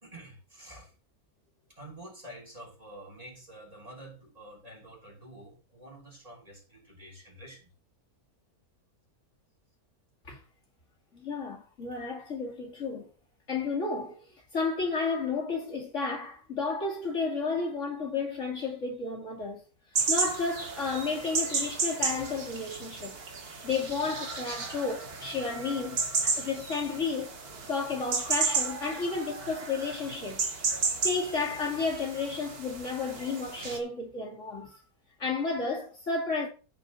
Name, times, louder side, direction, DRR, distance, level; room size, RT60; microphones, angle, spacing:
voice 1, 0.0-0.9 1.7-7.7, right 1 dB, 25° right, 3.5 m, -48 dB
voice 2, 11.1-13.1 13.5-14.2 14.5-19.6 20.1-23.2 23.6-27.4 27.7-30.5 31.0-34.8 35.2-36.5, left 4 dB, 50° left, 2.6 m, -32 dB
sound 1, 20.0-33.8, right 4 dB, 80° right, 2.2 m, -33 dB
14.5 x 4.9 x 4.0 m
omnidirectional pair, 1.6 m